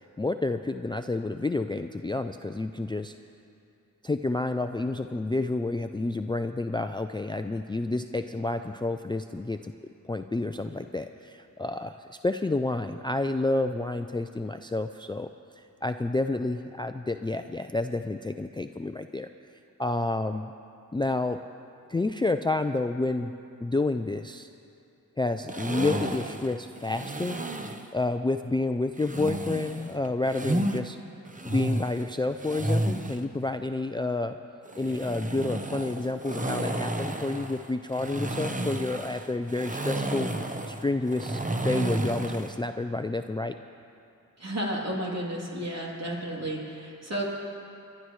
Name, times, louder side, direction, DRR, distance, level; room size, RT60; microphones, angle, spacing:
voice 1, 0.2-3.1 4.0-9.7 10.0-15.3 15.6-19.3 19.8-20.5 20.9-21.4 21.9-23.3 23.6-24.5 25.2-27.4 27.9-31.0 31.4-34.4 34.8-40.3 40.7-43.5, left 2 dB, 15° left, 7 dB, 0.4 m, -29 dB
sound 1, 25.5-27.9 29.0-30.8 31.2-33.2 34.7-42.6, right 1 dB, 25° right, 0.9 m, -31 dB
voice 2, 44.4-47.2, right 1 dB, 50° right, -3 dB, 3.1 m, -32 dB
25.5 x 11.5 x 3.2 m, 2.6 s
cardioid pair, 55°, 34 cm